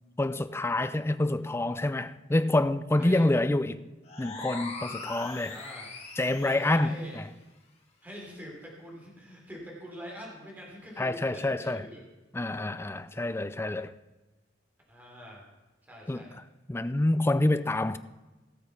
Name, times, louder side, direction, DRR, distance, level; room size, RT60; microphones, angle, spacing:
voice 1, 0.2-3.8 4.2-5.6 6.2-7.2 11.0-11.9 12.3-13.9 16.1-16.2 16.7-18.0, left 2 dB, 15° left, 0.4 m, -27 dB
sound 1, 4.0-6.8, left 3 dB, 35° left, 2.3 m, -41 dB
voice 2, 5.5-5.9 6.4-7.2 8.0-12.0 14.9-15.4 15.8-16.3, equal, 10° right, 3.3 m, -44 dB
17.0 x 6.8 x 5.8 m
head